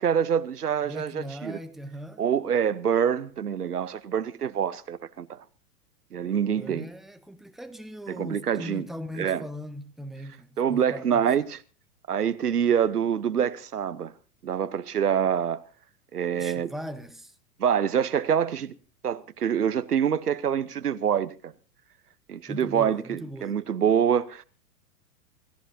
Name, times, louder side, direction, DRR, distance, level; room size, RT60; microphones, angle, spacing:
voice 1, 0.0-1.6 2.2-5.4 6.1-6.9 8.1-8.9 9.2-9.4 10.6-11.6 12.1-14.1 14.4-15.6 16.1-16.7 17.6-18.7 19.0-21.5 22.3-24.4, right 8 dB, 85° right, 1.0 m, -26 dB
voice 2, 0.9-2.2 6.2-11.5 16.3-17.3 22.5-23.6, equal, ahead, 1.2 m, -40 dB
28.0 x 14.5 x 2.7 m
figure-of-eight pair, 100°, 45 cm